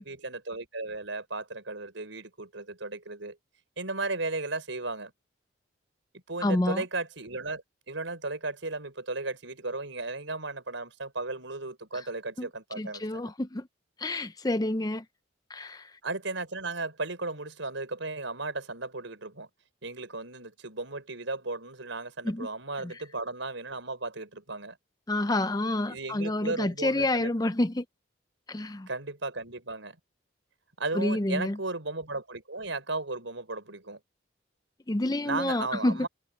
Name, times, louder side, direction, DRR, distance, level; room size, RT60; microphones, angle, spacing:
voice 1, 0.0-3.4 3.8-5.1 6.1-13.3 16.0-19.5 19.8-24.8 25.9-27.3 28.9-30.0 30.8-34.0 35.2-36.1, right 3 dB, 75° right, 5.0 m, -35 dB
voice 2, 6.4-6.8 11.9-12.0 12.4-12.5 12.8-13.7 14.0-15.0 15.5-16.0 22.2-22.5 22.8-23.0 25.1-27.9 28.5-28.9 30.9-31.6 34.9-36.1, left 1 dB, 20° left, 0.5 m, -28 dB
head